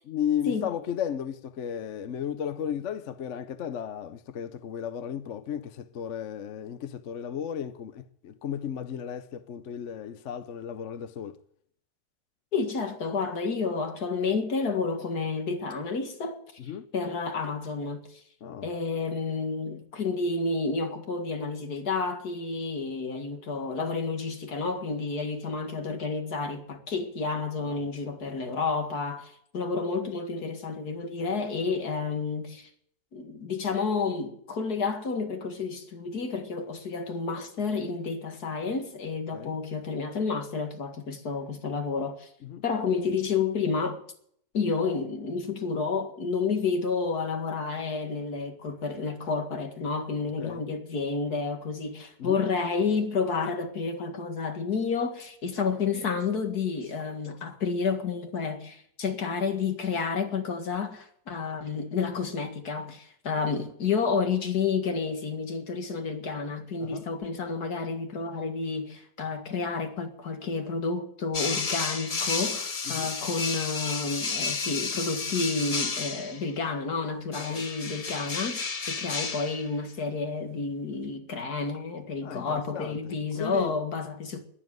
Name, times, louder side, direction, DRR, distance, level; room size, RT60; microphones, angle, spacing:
voice 1, 0.1-11.4 16.6-16.9 18.4-18.7 27.6-27.8 39.3-39.6 42.4-42.6 50.4-50.6 52.2-52.4 63.4-63.5 66.8-67.0 72.9-73.1 77.4-77.6 82.2-83.7, left 9 dB, 55° left, 1.0 m, -34 dB
voice 2, 12.5-16.4 16.9-18.2 18.6-32.7 33.1-42.3 42.6-44.0 44.5-84.4, left 4 dB, 70° left, 2.4 m, -30 dB
sound 1, 71.3-76.5 77.3-79.7, left 4 dB, 30° left, 0.7 m, -32 dB
20.0 x 7.6 x 9.3 m
omnidirectional pair, 1.7 m